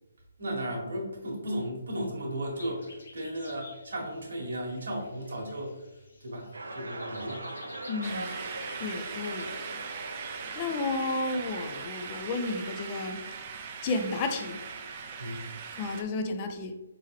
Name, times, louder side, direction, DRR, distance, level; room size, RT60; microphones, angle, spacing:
voice 1, 0.4-5.8 6.2-7.4 15.2-15.4, equal, 70° right, 1.6 m, -35 dB
sound 1, 2.6-8.9, left 3 dB, 70° left, 1.3 m, -52 dB
sound 2, 6.5-11.8, right 2 dB, 90° right, 0.9 m, -41 dB
voice 2, 7.9-8.4 8.8-9.5 10.6-13.2 13.8-14.6 15.8-16.8, left 3 dB, 30° left, 0.5 m, -32 dB
sound 3, 8.0-16.0, right 6 dB, 35° right, 0.5 m, -40 dB
4.5 x 3.8 x 3.1 m
hypercardioid pair, 155°, 0 cm